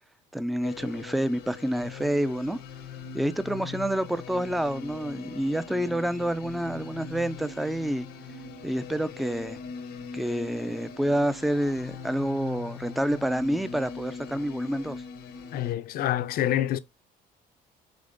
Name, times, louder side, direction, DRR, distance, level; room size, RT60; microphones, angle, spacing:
voice 1, 0.3-2.6 3.1-8.1 8.6-9.6 10.1-15.0, right 1 dB, ahead, 0.3 m, -28 dB
sound 1, 0.6-15.7, left 5 dB, 90° left, 0.8 m, -41 dB
voice 2, 15.5-16.8, left 12 dB, 60° left, 0.4 m, -27 dB
5.1 x 3.3 x 2.5 m
cardioid pair, 110°, 17 cm